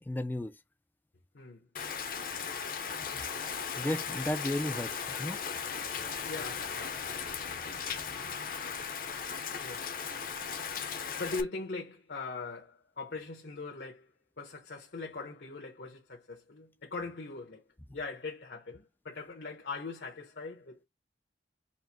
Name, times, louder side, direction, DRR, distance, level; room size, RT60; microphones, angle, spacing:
voice 1, 0.1-0.5 3.1-3.2 3.8-5.4, left 1 dB, 10° left, 0.3 m, -34 dB
voice 2, 1.3-1.7 6.2-7.0 9.5-10.0 11.2-17.6 17.9-20.9, left 3 dB, 75° left, 0.9 m, -41 dB
Rain, 1.8-11.4, left 6 dB, 50° left, 0.6 m, -37 dB
4.3 x 2.5 x 4.6 m
head